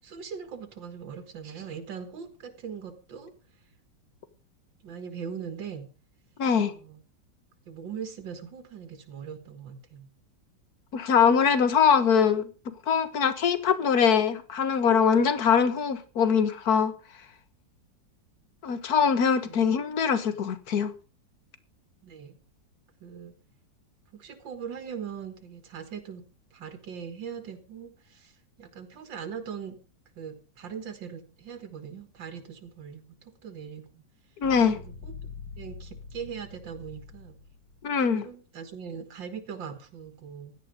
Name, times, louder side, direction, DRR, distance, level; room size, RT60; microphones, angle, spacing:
voice 1, 0.0-3.3 4.8-5.9 6.7-7.0 7.7-10.1 19.4-19.7 22.0-22.4 23.0-23.3 24.1-26.2 26.5-29.8 30.2-34.0 34.7-37.4 38.2-40.6, right 7 dB, 85° right, 2.4 m, -40 dB
voice 2, 6.4-6.7 10.9-16.9 18.6-20.9 34.4-34.8 37.8-38.3, left 6 dB, 55° left, 1.9 m, -23 dB
sound 1, 34.4-37.8, left 4 dB, 85° left, 3.2 m, -44 dB
16.0 x 12.0 x 5.2 m
omnidirectional pair, 2.0 m